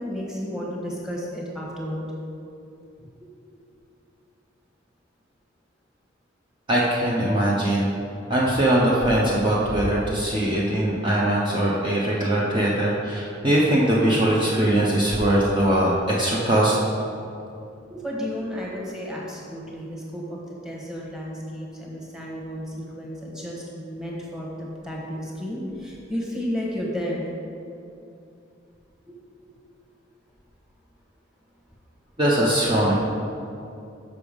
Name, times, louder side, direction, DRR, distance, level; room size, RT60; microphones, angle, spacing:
voice 1, 0.0-2.1 3.2-3.3 17.9-20.2 20.6-27.2 29.1-29.5, equal, 5° right, -3 dB, 1.4 m, -32 dB
voice 2, 6.7-7.9 8.3-16.8 32.2-33.0, right 1 dB, 25° right, -6 dB, 0.9 m, -21 dB
6.8 x 6.1 x 5.2 m, 2.6 s
head